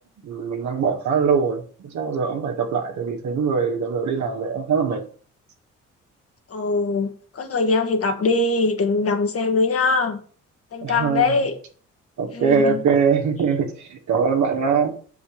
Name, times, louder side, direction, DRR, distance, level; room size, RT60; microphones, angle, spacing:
voice 1, 0.2-5.0 10.8-11.5 12.2-14.9, right 6 dB, 70° right, 2.0 m, -22 dB
voice 2, 6.5-10.2 10.7-11.6 12.3-12.8, left 3 dB, 50° left, 1.7 m, -22 dB
6.8 x 4.9 x 6.6 m
cardioid pair, 90°, 30 cm